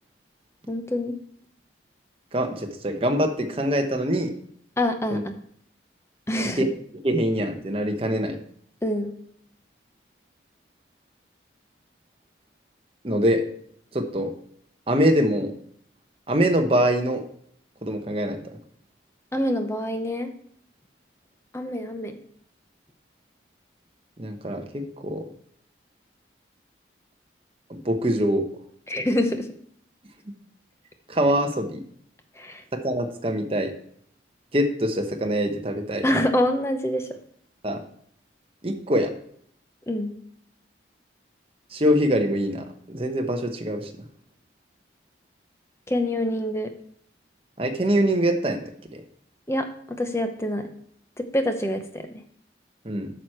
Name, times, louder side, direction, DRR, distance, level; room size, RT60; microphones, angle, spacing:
voice 1, 0.7-1.2 4.8-5.3 6.3-6.6 8.8-9.2 19.3-20.3 21.5-22.2 28.9-29.5 32.4-32.6 36.0-37.2 39.9-40.2 45.9-46.7 49.5-50.7 51.2-52.2, left 1 dB, 15° left, 7 dB, 0.7 m, -26 dB
voice 2, 2.3-4.3 5.1-5.2 6.6-6.7 7.0-8.4 13.0-13.4 13.9-14.3 14.9-15.5 16.3-17.2 17.8-18.6 24.2-25.3 27.7-28.4 31.1-31.8 32.7-33.7 34.5-36.0 37.6-37.8 38.6-39.1 41.7-44.0 47.6-48.6 48.9-49.0 52.8-53.1, equal, 30° right, 5 dB, 0.9 m, -24 dB
9.0 x 6.4 x 4.4 m, 0.64 s
head